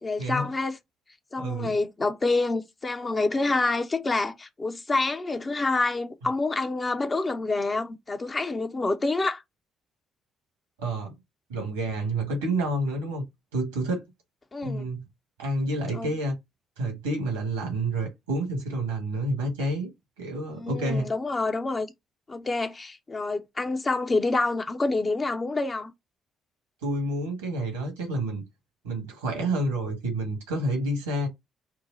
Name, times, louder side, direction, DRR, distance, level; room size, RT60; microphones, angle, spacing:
voice 1, 0.0-0.8 1.3-9.4 14.5-14.9 15.9-16.1 20.6-21.9 22.3-25.9, left 3 dB, 30° left, 0.8 m, -27 dB
voice 2, 1.4-1.7 10.8-11.1 11.5-13.2 13.5-14.1 14.6-15.1 15.4-16.3 16.8-19.9 20.2-21.1 26.8-28.4 28.8-31.3, right 1 dB, 80° right, 1.5 m, -29 dB
4.6 x 2.2 x 3.9 m
figure-of-eight pair, 45°, 0 cm